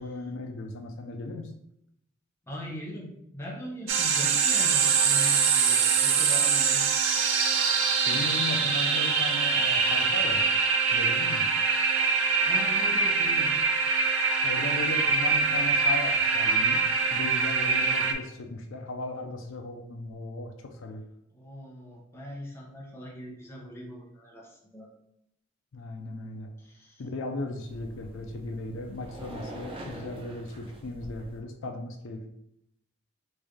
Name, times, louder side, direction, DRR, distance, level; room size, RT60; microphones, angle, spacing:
voice 1, 0.0-1.5 8.1-10.5 10.9-11.5 14.4-21.0 25.7-26.5 27.0-32.2, left 2 dB, 80° left, 5 dB, 0.4 m, -36 dB
voice 2, 2.5-7.0 12.4-13.6 21.3-24.9 26.6-27.0 29.9-30.0, equal, 15° left, -3 dB, 0.8 m, -40 dB
sound 1, 3.9-18.1, right 5 dB, 80° right, 0.5 m, -24 dB
sound 2, 27.7-31.4, right 1 dB, 25° right, 0.5 m, -44 dB
3.2 x 2.6 x 3.5 m, 0.77 s
head